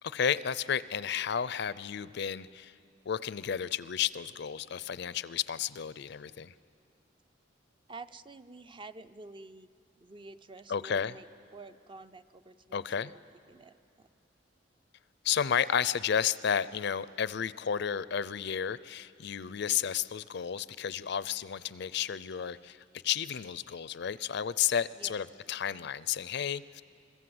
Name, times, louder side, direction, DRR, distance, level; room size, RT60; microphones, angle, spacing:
voice 1, 0.0-2.7 3.0-6.5 10.7-11.1 12.7-13.1 15.2-26.8, left 8 dB, 65° left, 17 dB, 0.5 m, -32 dB
voice 2, 7.9-9.7 10.0-11.3 11.5-13.2 13.5-14.1 25.0-25.2, right 3 dB, 25° right, 11 dB, 0.5 m, -49 dB
26.0 x 22.0 x 7.8 m, 2.5 s
head